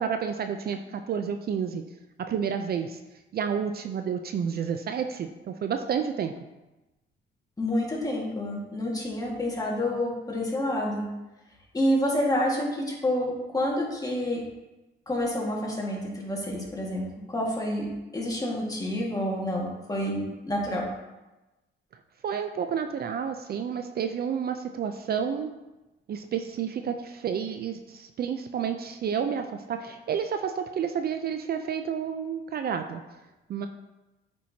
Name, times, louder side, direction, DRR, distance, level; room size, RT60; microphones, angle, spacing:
voice 1, 0.0-1.8 2.2-3.0 3.3-6.3 22.2-25.5 26.1-33.0 33.5-33.7, right 7 dB, 50° right, 7 dB, 0.5 m, -30 dB
voice 2, 7.6-11.0 11.7-14.4 15.1-20.8, left 1 dB, 20° left, -2 dB, 1.8 m, -28 dB
8.6 x 4.5 x 2.8 m, 1.0 s
cardioid pair, 90°, 20 cm